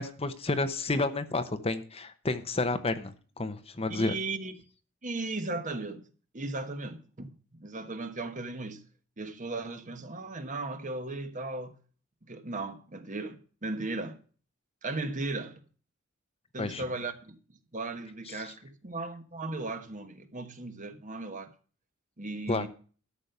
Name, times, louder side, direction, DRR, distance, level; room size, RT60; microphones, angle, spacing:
voice 1, 0.0-4.1 16.6-16.8 22.5-22.6, left 2 dB, 30° left, 0.9 m, -30 dB
voice 2, 3.9-4.5 5.0-6.1 6.3-8.8 9.2-11.8 12.3-14.2 14.8-15.6 16.5-17.4 17.7-21.5 22.2-22.7, right 2 dB, 40° right, 1.3 m, -36 dB
13.0 x 6.4 x 6.8 m
head